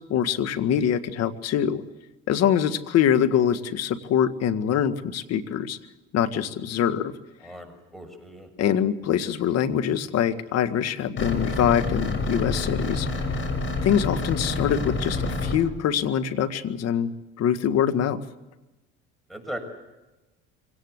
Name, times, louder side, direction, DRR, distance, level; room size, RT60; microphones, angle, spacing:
voice 1, 0.1-1.8 2.3-5.8 6.1-7.1 8.6-13.4 13.8-18.2, left 9 dB, 60° left, 11 dB, 1.9 m, -24 dB
voice 2, 7.4-8.5 19.3-19.6, equal, ahead, 6 dB, 6.8 m, -38 dB
sound 1, 11.2-15.6, left 2 dB, 40° left, 6.4 m, -28 dB
25.0 x 18.0 x 8.1 m, 1.1 s
supercardioid pair, 90°, 29 cm